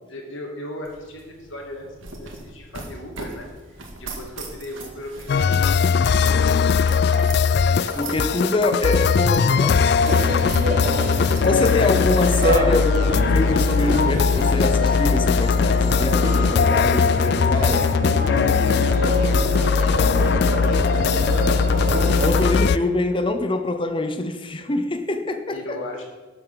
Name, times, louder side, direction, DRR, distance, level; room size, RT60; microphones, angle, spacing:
voice 1, 0.1-8.3 10.3-10.9 11.3-12.0 18.7-22.0 22.4-22.9 25.5-26.0, left 1 dB, 75° left, 2.7 m, -38 dB
sound 1, 0.8-18.0, right 3 dB, 80° right, 2.0 m, -41 dB
sound 2, 5.3-22.8, left 5 dB, 55° left, 0.3 m, -19 dB
voice 2, 8.0-9.9 11.4-17.9 22.2-25.8, left 2 dB, 25° left, 0.7 m, -25 dB
sound 3, 10.0-22.6, right 1 dB, 40° right, 1.5 m, -28 dB
12.0 x 7.1 x 7.0 m
head